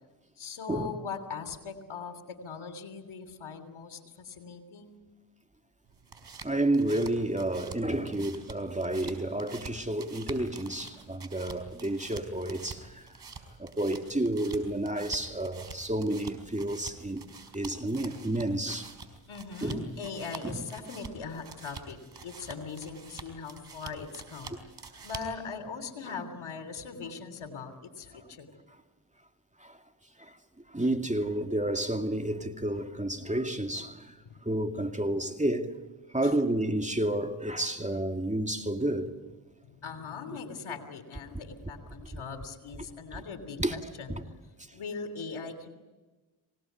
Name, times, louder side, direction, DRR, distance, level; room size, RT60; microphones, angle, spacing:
voice 1, 0.4-5.0 19.3-24.6 25.0-28.5 34.2-34.4 36.2-36.3 39.6-44.1 44.7-45.7, left 5 dB, 70° left, 3.3 m, -40 dB
sound 1, 5.9-25.4, right 4 dB, 55° right, 5.1 m, -47 dB
voice 2, 6.4-13.1 13.6-17.3 17.5-18.9 19.6-20.0 20.4-20.6 26.1-26.2 29.6-29.8 30.2-30.4 30.7-34.2 34.4-35.8 36.1-39.1 42.1-42.2 43.6-43.8 44.1-44.2, right 1 dB, 15° right, 2.4 m, -30 dB
26.0 x 19.0 x 9.3 m
supercardioid pair, 45°, 50 cm